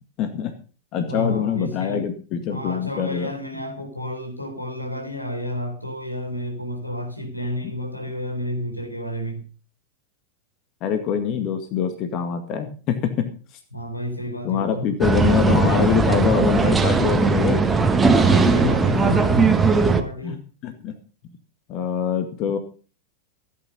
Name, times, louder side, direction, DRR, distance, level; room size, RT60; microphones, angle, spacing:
voice 1, 0.2-0.5 0.9-3.3 10.8-13.3 14.4-17.8 20.2-20.9 21.7-22.6, left 7 dB, 40° left, 2.0 m, -24 dB
voice 2, 1.1-2.1 2.5-9.4 13.7-14.9 18.0-20.4, equal, 85° left, 4.0 m, -30 dB
sound 1, 15.0-20.0, right 4 dB, 10° right, 1.5 m, -18 dB
16.0 x 9.2 x 5.5 m
figure-of-eight pair, 90°, 0 cm